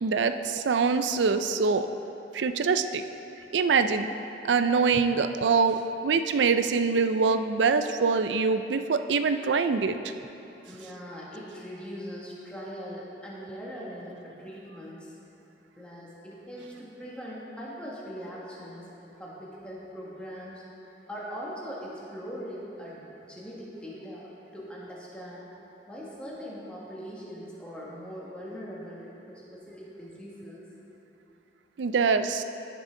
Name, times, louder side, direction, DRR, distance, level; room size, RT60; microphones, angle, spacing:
voice 1, 0.0-1.9 2.3-3.0 3.5-4.1 4.4-10.0 31.8-32.4, right 5 dB, 90° right, 10 dB, 0.4 m, -24 dB
voice 2, 10.6-15.1 15.8-20.6 21.1-25.5 25.9-30.7, equal, 5° left, -6 dB, 1.6 m, -41 dB
15.5 x 6.1 x 3.8 m, 2.8 s
head